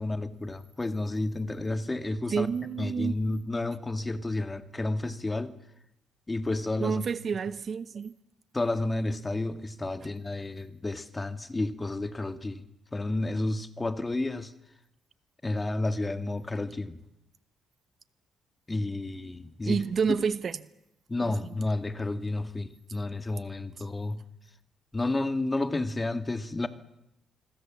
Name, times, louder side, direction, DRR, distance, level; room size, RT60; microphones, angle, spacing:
voice 1, 0.0-5.5 6.3-7.1 8.5-12.6 12.9-14.5 15.4-17.0 18.7-19.8 20.1-20.2 21.1-24.2 24.9-26.7, left 2 dB, 20° left, 1.9 m, -31 dB
voice 2, 2.3-3.2 6.8-8.1 19.6-20.6 21.2-21.5, right 6 dB, 50° right, 1.0 m, -29 dB
26.5 x 22.0 x 7.5 m
cardioid pair, 90°, 0 cm